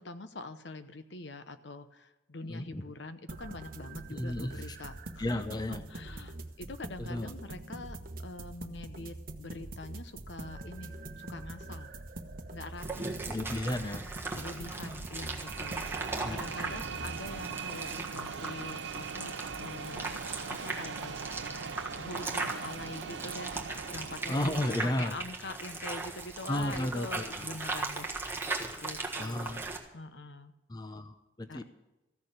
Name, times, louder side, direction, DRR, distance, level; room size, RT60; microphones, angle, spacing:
voice 1, 0.0-8.0 8.2-11.9 12.5-13.1 14.3-15.8 16.3-20.1 20.5-21.2 22.0-29.6 29.9-30.5 31.5-31.6, left 2 dB, 70° left, 10 dB, 0.9 m, -44 dB
voice 2, 2.4-2.8 4.1-4.8 5.2-5.8 7.0-7.3 13.3-14.1 16.1-16.4 24.3-25.2 26.5-27.5 29.2-29.7 30.7-31.6, left 1 dB, 20° left, 9 dB, 0.7 m, -34 dB
sound 1, 3.3-17.4, right 2 dB, 50° right, 1.1 m, -44 dB
sound 2, 12.8-29.8, right 3 dB, 15° right, 1.4 m, -38 dB
sound 3, 15.2-25.0, right 5 dB, 70° right, 0.5 m, -41 dB
14.5 x 6.8 x 9.1 m, 1.0 s
head